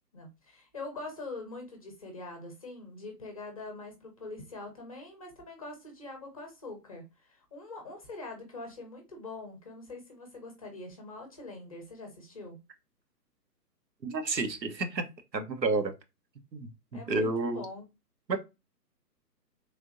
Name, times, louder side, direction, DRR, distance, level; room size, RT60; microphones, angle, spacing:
voice 1, 0.1-12.6 16.9-17.9, left 2 dB, 25° left, 0.6 m, -43 dB
voice 2, 14.0-15.0 15.3-15.9 16.5-17.6 18.3-18.4, right 3 dB, 90° right, 0.9 m, -30 dB
3.4 x 2.7 x 2.5 m
figure-of-eight pair, 140°, 49 cm